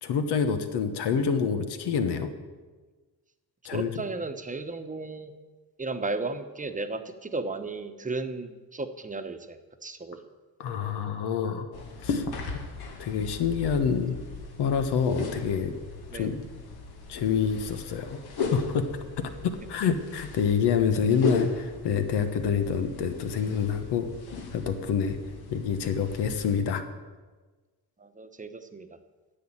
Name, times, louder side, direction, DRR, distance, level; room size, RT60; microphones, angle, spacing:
voice 1, 0.0-2.3 3.6-3.9 10.6-11.7 12.0-12.2 13.0-14.2 14.6-15.7 16.1-16.4 17.1-18.2 18.5-18.9 19.2-24.1 24.5-25.2 25.5-26.8, left 6 dB, 90° left, 8 dB, 1.3 m, -27 dB
voice 2, 3.7-5.3 5.8-10.3 16.1-16.4 28.0-29.0, right 3 dB, 20° right, 8 dB, 1.0 m, -35 dB
sound 1, 11.7-26.6, left 4 dB, 70° left, 1.9 m, -37 dB
10.5 x 7.8 x 8.9 m, 1.3 s
cardioid pair, 100°, 39 cm